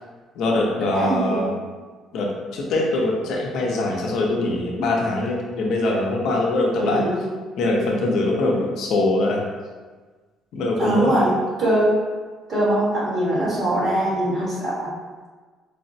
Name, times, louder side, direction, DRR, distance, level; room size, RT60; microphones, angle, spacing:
voice 1, 0.4-1.5 2.1-7.0 7.6-9.4 10.5-11.3, left 2 dB, 70° left, -1 dB, 0.6 m, -22 dB
voice 2, 0.9-1.5 6.8-7.2 10.8-11.3 11.6-11.9 12.5-14.9, right 1 dB, 40° right, -8 dB, 1.4 m, -22 dB
4.6 x 2.1 x 2.7 m, 1.4 s
cardioid pair, 135°, 0 cm